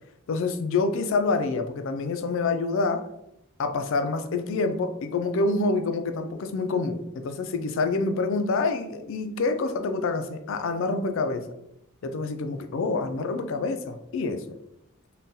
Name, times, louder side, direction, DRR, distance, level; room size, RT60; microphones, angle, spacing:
voice 1, 0.3-3.0 3.6-11.5 12.0-14.4, left 3 dB, 60° left, 8 dB, 0.3 m, -27 dB
3.7 x 2.2 x 2.6 m, 0.82 s
head